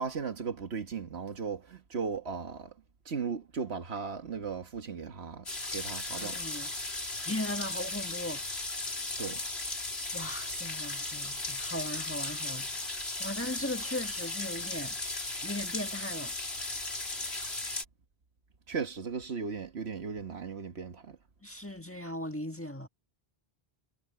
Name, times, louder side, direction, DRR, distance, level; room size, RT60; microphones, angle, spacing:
voice 1, 0.0-2.7 3.0-5.4 5.7-6.4 9.2-9.4 18.7-21.2, right 5 dB, 80° right, 1.7 m, -36 dB
sound 1, 5.5-17.8, left 2 dB, 85° left, 3.8 m, -36 dB
voice 2, 6.2-6.7 7.2-8.4 10.1-15.0 15.4-16.3 21.4-22.9, left 1 dB, 10° left, 1.6 m, -38 dB
omnidirectional pair, 1.1 m